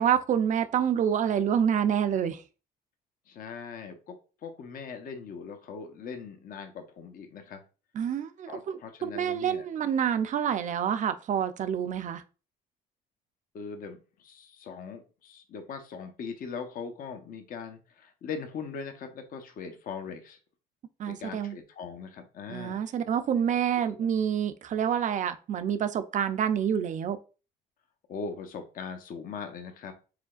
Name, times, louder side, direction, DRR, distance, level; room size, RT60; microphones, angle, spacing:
voice 1, 0.0-2.4 7.9-12.2 21.0-21.6 22.5-27.2, right 8 dB, 45° right, 0.5 m, -27 dB
voice 2, 3.3-4.2 4.4-7.6 8.5-9.7 13.5-20.4 21.1-22.8 23.5-23.6 23.9-24.1 28.1-29.9, left 5 dB, 55° left, 0.9 m, -40 dB
4.9 x 3.7 x 2.4 m
cardioid pair, 110°, 17 cm